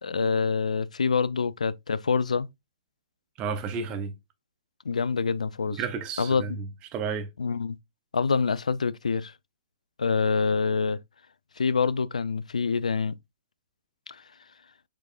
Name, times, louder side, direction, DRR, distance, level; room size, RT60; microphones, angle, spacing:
voice 1, 0.0-2.5 4.9-5.8 6.2-6.4 7.4-7.8 8.1-9.3 10.0-11.0 11.6-13.2 14.1-14.2, left 5 dB, 80° left, 0.3 m, -26 dB
voice 2, 3.4-4.1 5.7-7.3, right 5 dB, 25° right, 0.8 m, -32 dB
4.9 x 4.6 x 2.4 m
figure-of-eight pair, 120°, 4 cm